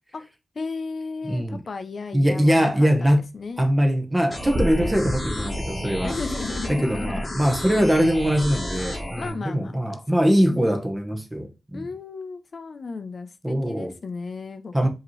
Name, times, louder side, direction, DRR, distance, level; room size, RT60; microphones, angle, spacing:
voice 1, 0.5-3.7 6.0-7.3 9.2-10.0 10.5-10.7 11.7-14.9, left 4 dB, 50° left, 0.5 m, -35 dB
voice 2, 1.3-1.6 2.1-3.2 3.6-6.1 6.7-11.8 13.4-13.9 14.7-14.9, equal, 15° right, 1.0 m, -22 dB
sound 1, 4.3-9.3, left 1 dB, 15° left, 1.5 m, -32 dB
sound 2, 4.5-8.9, equal, 35° right, 1.1 m, -33 dB
5.1 x 2.9 x 3.1 m
wide cardioid pair, 95°, 0 cm